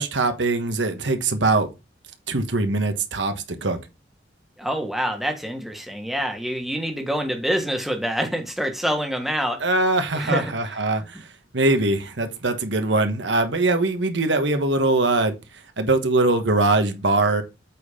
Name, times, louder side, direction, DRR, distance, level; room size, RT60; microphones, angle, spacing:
voice 1, 0.0-1.7 2.3-3.8 9.6-11.3 11.5-15.3 15.8-17.4, right 2 dB, 75° right, 1.3 m, -22 dB
voice 2, 4.6-9.6 10.1-10.5, equal, ahead, 1.4 m, -26 dB
8.3 x 4.4 x 5.0 m
head